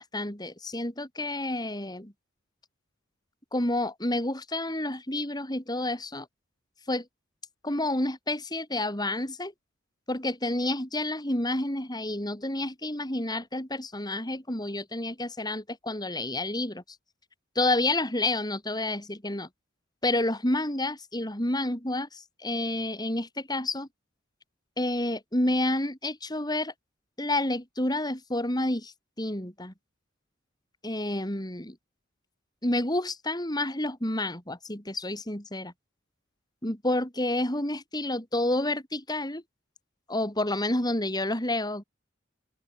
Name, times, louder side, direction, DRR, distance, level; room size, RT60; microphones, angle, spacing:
voice 1, 0.0-2.1 3.5-6.3 6.9-7.1 7.6-9.5 10.1-16.8 17.5-19.5 20.0-23.9 24.8-26.7 27.2-29.7 30.8-31.8 32.6-35.7 36.6-39.4 40.1-41.8, left 1 dB, 20° left, 6.1 m, -29 dB
open air
head